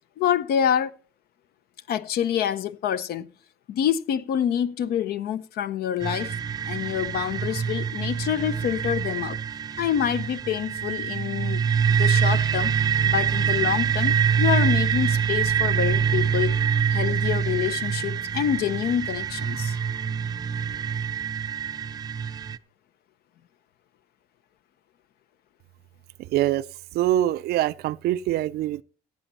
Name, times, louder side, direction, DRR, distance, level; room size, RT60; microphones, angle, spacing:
voice 1, 0.2-0.9 1.9-3.3 3.7-6.3 6.7-9.4 9.8-11.6 11.9-12.7 13.0-16.6 16.9-19.8, left 9 dB, 70° left, 0.8 m, -26 dB
sound 1, 6.0-22.6, right 7 dB, 25° right, 0.5 m, -25 dB
voice 2, 26.3-26.6 26.9-28.8, right 13 dB, 70° right, 0.5 m, -24 dB
15.0 x 8.5 x 4.1 m
cardioid pair, 110°, 17 cm